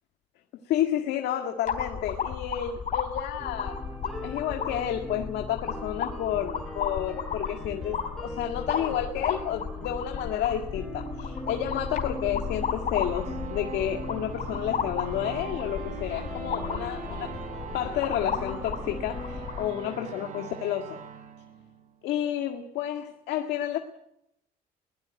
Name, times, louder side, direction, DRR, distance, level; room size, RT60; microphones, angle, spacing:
voice 1, 0.7-3.8 4.2-17.3 17.7-21.0 22.0-23.8, left 10 dB, 80° left, 4 dB, 2.0 m, -31 dB
sound 1, 1.7-19.7, left 7 dB, 50° left, 3.7 m, -34 dB
sound 2, 3.4-20.2, right 1 dB, 5° left, 7.6 m, -41 dB
sound 3, 13.0-22.3, right 9 dB, 50° right, 1.8 m, -43 dB
21.5 x 17.5 x 9.0 m, 0.80 s
cardioid pair, 110°, 17 cm